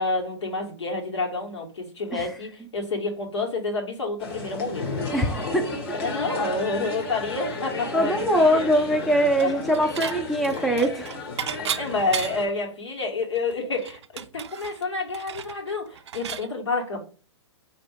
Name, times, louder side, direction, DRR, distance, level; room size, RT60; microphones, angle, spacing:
voice 1, 0.0-4.8 6.0-8.7 9.4-9.5 11.8-17.0, left 3 dB, 75° left, 1.6 m, -29 dB
sound 1, 4.2-12.5, left 3 dB, 60° left, 1.3 m, -33 dB
voice 2, 5.1-5.7 7.9-11.1, equal, ahead, 0.5 m, -22 dB
Dishes pots and pans / Chink clink, 9.4-10.2 10.4-12.6 13.0-13.1 13.4-16.5, right 9 dB, 70° right, 0.4 m, -34 dB
4.3 x 2.8 x 3.5 m
figure-of-eight pair, 115°, 15 cm